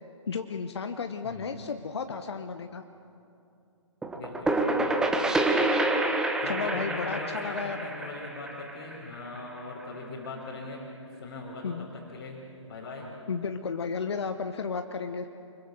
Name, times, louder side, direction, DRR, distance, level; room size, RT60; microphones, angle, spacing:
voice 1, 0.3-2.8 6.4-7.8 11.6-11.9 13.3-15.3, left 5 dB, 55° left, 8 dB, 1.1 m, -33 dB
voice 2, 1.2-1.7 4.1-5.1 6.4-10.9 11.2-13.1, left 2 dB, 30° left, -6 dB, 4.2 m, -40 dB
sound 1, 4.0-9.6, right 2 dB, 5° right, 1.1 m, -28 dB
25.0 x 22.5 x 6.8 m, 2.6 s
figure-of-eight pair, 135°, 17 cm